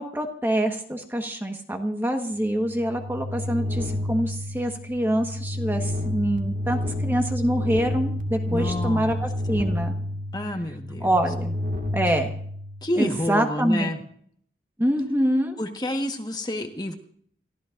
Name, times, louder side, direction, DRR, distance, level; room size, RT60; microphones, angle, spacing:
voice 1, 0.0-10.0 11.0-11.5 11.9-12.3 13.0-13.9 14.8-15.6, equal, 10° right, 3 dB, 1.4 m, -25 dB
sound 1, 2.5-13.1, left 1 dB, 45° right, 1.9 m, -30 dB
voice 2, 8.5-9.2 10.3-11.1 12.1-12.2 12.8-14.0 15.6-16.9, left 1 dB, 25° left, 4 dB, 1.4 m, -28 dB
29.5 x 14.5 x 2.6 m, 0.62 s
head